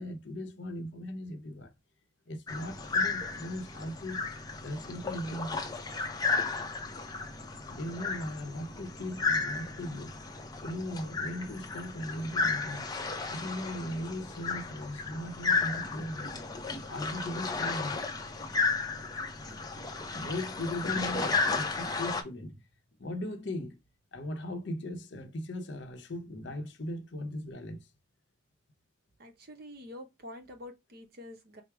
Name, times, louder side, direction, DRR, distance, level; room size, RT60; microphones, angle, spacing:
voice 1, 0.0-1.7 2.3-4.3 4.6-5.6 7.7-10.2 10.6-12.9 13.3-16.4 16.8-18.1 20.1-22.6 23.0-23.8 24.1-27.9, left 1 dB, 60° left, 0.7 m, -38 dB
sound 1, 2.5-22.2, left 4 dB, 20° left, 0.5 m, -33 dB
voice 2, 29.2-31.6, left 1 dB, 50° right, 0.8 m, -47 dB
4.6 x 2.0 x 4.6 m
head